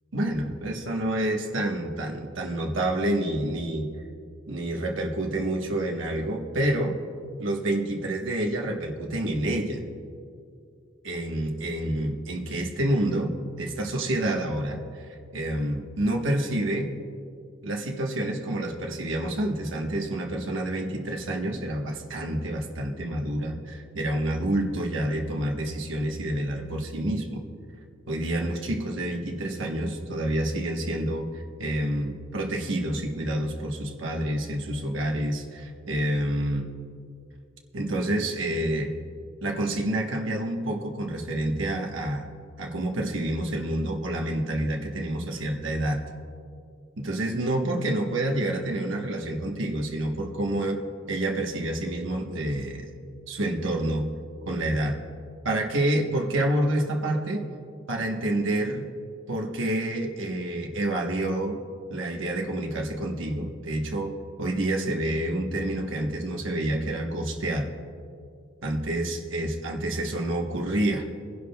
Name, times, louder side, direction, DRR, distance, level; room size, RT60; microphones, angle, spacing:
voice 1, 0.1-3.9 4.5-7.0 7.4-9.8 11.0-15.0 15.3-16.9 17.6-27.4 28.1-36.7 37.7-38.9 39.4-42.2 42.6-46.0 47.0-50.8 51.1-52.9 53.3-54.1 54.5-55.0 55.4-57.4 57.9-58.9 59.3-61.6 61.9-67.7 68.6-71.1, right 1 dB, 65° right, 1 dB, 1.2 m, -28 dB
24.5 x 11.0 x 2.3 m, 2.3 s
head